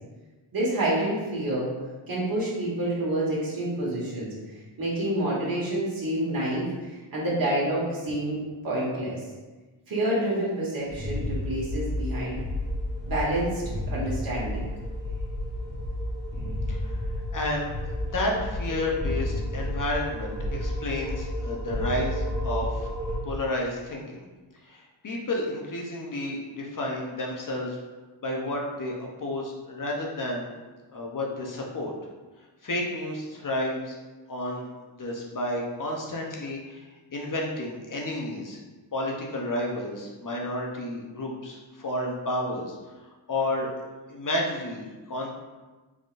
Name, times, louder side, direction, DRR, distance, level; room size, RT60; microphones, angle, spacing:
voice 1, 0.5-1.7 2.1-4.3 4.8-9.2 9.9-12.4 13.1-13.6 13.9-14.6, right 1 dB, 45° right, -7 dB, 1.5 m, -28 dB
sound 1, 10.9-23.2, left 1 dB, 20° right, 1.3 m, -31 dB
voice 2, 17.3-17.7 18.0-22.9 23.2-24.3 24.6-27.8 28.2-30.5 30.9-31.9 32.6-34.0 34.3-34.7 35.0-36.8 37.1-38.6 38.9-42.8 43.3-43.7 44.1-45.3, left 1 dB, 40° left, -1 dB, 0.7 m, -31 dB
3.8 x 3.6 x 2.5 m, 1.2 s
cardioid pair, 75°, 49 cm